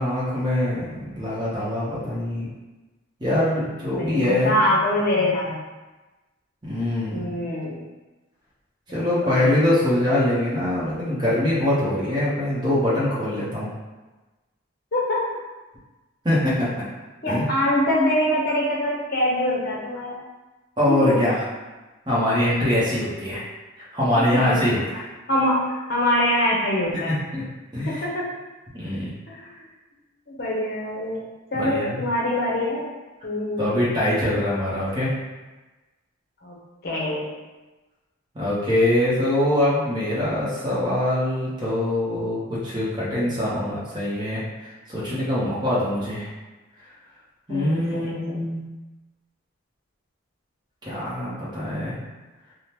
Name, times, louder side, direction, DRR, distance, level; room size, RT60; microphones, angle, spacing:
voice 1, 0.0-2.5 3.2-4.5 6.6-7.2 8.9-13.7 16.2-16.8 17.3-17.5 20.8-21.4 22.1-23.4 23.8-25.0 26.9-27.4 27.7-28.0 28.7-29.1 31.5-32.0 33.6-35.1 38.3-44.4 44.9-46.3 47.5-48.6 50.9-52.0, left 1 dB, 20° right, -9 dB, 0.8 m, -23 dB
voice 2, 3.9-5.6 7.1-7.8 8.9-9.4 14.9-15.3 17.2-20.2 20.9-21.0 24.1-24.6 25.3-25.6 25.9-27.2 27.9-28.3 29.3-29.6 30.3-32.9 33.2-33.7 36.4-36.6 36.8-37.2 47.5-48.2, left 1 dB, 50° left, -4 dB, 0.7 m, -24 dB
3.4 x 2.1 x 2.9 m, 1.2 s
head